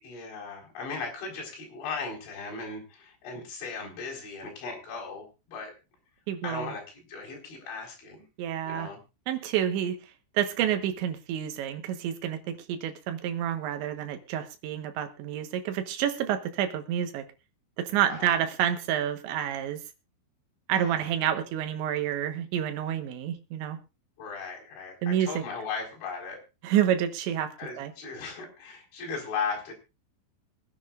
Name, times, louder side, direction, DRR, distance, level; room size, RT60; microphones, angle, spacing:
voice 1, 0.0-5.7 6.4-8.2 8.7-9.0 18.1-18.4 20.7-21.1 24.2-26.4 27.6-29.7, left 5 dB, 70° left, -1 dB, 6.7 m, -37 dB
voice 2, 6.3-6.7 8.4-8.9 9.3-10.0 10.3-17.2 17.8-19.8 20.7-23.8 25.0-25.4 26.6-27.9, right 10 dB, 75° right, 7 dB, 3.4 m, -29 dB
24.0 x 10.0 x 2.5 m, 0.27 s
omnidirectional pair, 5.5 m